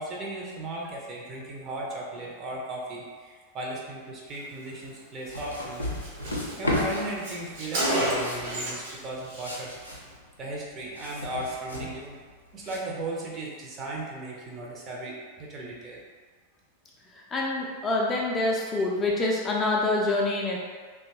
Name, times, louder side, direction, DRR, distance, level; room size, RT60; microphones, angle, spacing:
voice 1, 0.0-5.9 6.6-9.7 10.4-12.3 12.5-16.0, right 1 dB, 30° right, -3 dB, 0.6 m, -36 dB
sound 1, 5.2-12.8, left 1 dB, 85° left, 0.4 m, -34 dB
Car, 5.3-5.5 5.7-5.8 6.0-9.0 9.2-9.5, right 1 dB, 55° right, 0.8 m, -30 dB
voice 2, 17.1-20.6, left 2 dB, 20° left, -2 dB, 0.4 m, -26 dB
2.8 x 2.2 x 2.8 m, 1.5 s
figure-of-eight pair, 90°, 0 cm